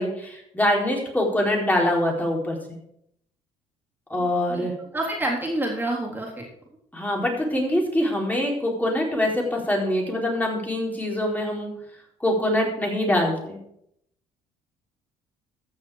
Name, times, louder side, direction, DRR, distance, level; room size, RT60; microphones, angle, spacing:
voice 1, 0.0-2.6 4.1-4.7 6.9-11.7 12.2-13.6, left 1 dB, 10° left, -1 dB, 4.2 m, -24 dB
voice 2, 4.2-4.7 4.9-6.4, right 1 dB, 15° right, -3 dB, 3.6 m, -28 dB
14.5 x 6.6 x 4.9 m, 0.75 s
supercardioid pair, 80°, 14 cm